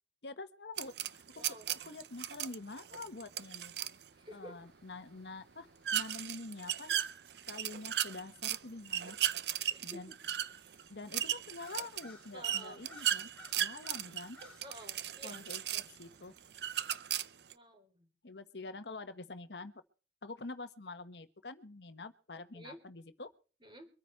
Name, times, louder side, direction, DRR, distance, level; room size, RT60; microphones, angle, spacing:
voice 1, 0.2-1.2 1.8-3.7 4.3-5.7 5.9-7.0 7.4-9.2 9.8-10.1 10.9-13.3 13.6-14.4 15.2-16.3 18.2-19.8 20.2-23.3, left 3 dB, 75° left, 11 dB, 1.2 m, -46 dB
sound 1, 0.8-4.0 5.9-8.6 8.9-16.0 16.5-17.5, right 11 dB, 70° right, 0.6 m, -36 dB
voice 2, 1.4-1.7 4.2-4.6 9.7-10.2 12.3-12.8 14.6-15.5 17.5-18.1 22.5-22.8 23.6-23.9, equal, 30° right, 6 dB, 3.8 m, -51 dB
sound 2, 4.1-16.8, left 1 dB, 5° left, 3.2 m, -61 dB
24.0 x 9.6 x 4.5 m, 0.38 s
head